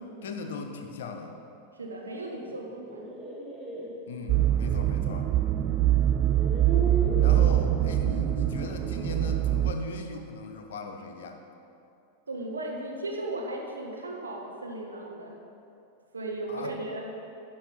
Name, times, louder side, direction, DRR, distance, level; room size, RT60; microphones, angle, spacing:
voice 1, 0.2-1.4 4.1-5.3 7.1-11.4 16.5-16.8, left 3 dB, 60° left, 4 dB, 0.9 m, -38 dB
voice 2, 1.8-3.1 12.3-15.4 16.1-17.1, right 2 dB, 75° right, -1 dB, 1.4 m, -36 dB
sound 1, 2.6-3.9 5.4-5.5 6.1-7.5, right 1 dB, 10° right, 1.6 m, -36 dB
sound 2, 4.3-9.7, right 12 dB, 35° right, 0.3 m, -24 dB
11.5 x 5.5 x 5.4 m, 2.8 s
figure-of-eight pair, 90°, 0 cm